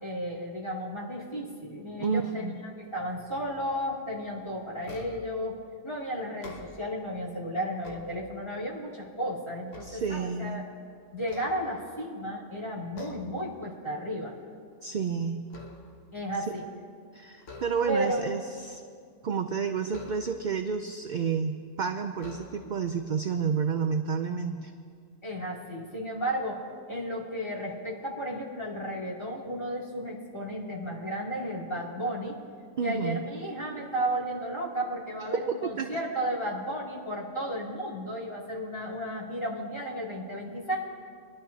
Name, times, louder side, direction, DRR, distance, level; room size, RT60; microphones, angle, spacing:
voice 1, 0.0-5.6 5.8-10.6 11.1-14.3 16.1-16.6 17.9-18.3 25.2-26.6 26.9-32.4 32.8-40.8, equal, 20° left, -6 dB, 2.6 m, -33 dB
voice 2, 2.0-2.6 9.8-10.7 14.8-15.4 16.5-16.6 17.1-18.8 19.2-24.7 32.8-33.2 35.3-36.0, right 6 dB, 60° right, 6 dB, 0.5 m, -30 dB
sound 1, 4.8-5.4 6.3-7.1 7.6-8.7 9.2-10.7 11.2-12.2 12.9-13.4 13.8-14.1 14.5-16.2 17.4-18.2 19.9-20.6 21.4-21.5 22.1-22.9, left 3 dB, 70° left, 1.5 m, -47 dB
24.0 x 11.5 x 2.7 m, 2.1 s
omnidirectional pair, 1.3 m